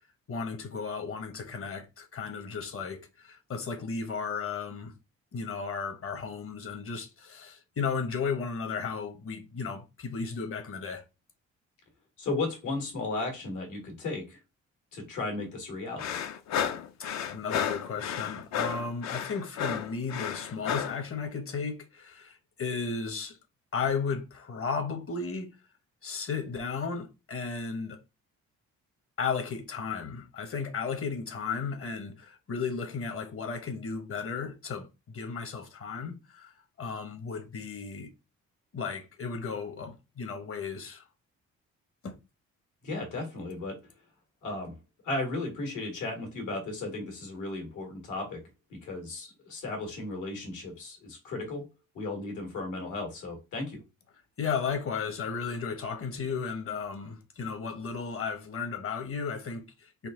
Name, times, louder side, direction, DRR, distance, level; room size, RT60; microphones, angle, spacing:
voice 1, 0.3-4.9 5.3-11.0 17.3-23.4 23.7-25.6 26.0-28.0 29.2-38.1 38.7-41.1 42.0-42.1 54.4-60.1, left 5 dB, 45° left, 0.9 m, -34 dB
voice 2, 12.2-14.4 14.9-16.1 42.8-43.8 44.4-44.8 45.0-51.6 51.9-53.8, left 2 dB, 80° left, 1.8 m, -35 dB
sound 1, 16.0-21.0, left 8 dB, 65° left, 0.5 m, -32 dB
3.9 x 2.6 x 3.7 m
cardioid pair, 90°, 30 cm